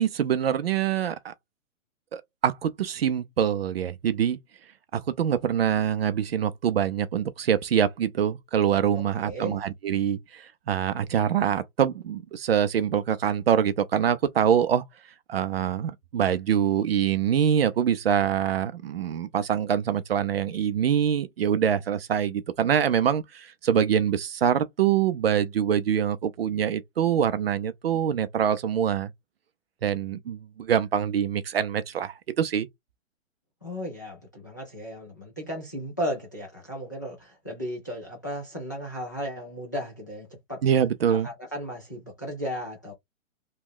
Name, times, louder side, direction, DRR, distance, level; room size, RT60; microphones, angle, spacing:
voice 1, 0.0-1.3 2.1-4.4 4.9-14.8 15.3-29.1 29.8-32.7 40.6-41.3, right 9 dB, 50° right, 0.5 m, -25 dB
voice 2, 9.1-9.6 33.6-40.6 41.1-42.9, equal, 15° left, 0.4 m, -35 dB
3.1 x 2.3 x 3.5 m
hypercardioid pair, 160°, 40 cm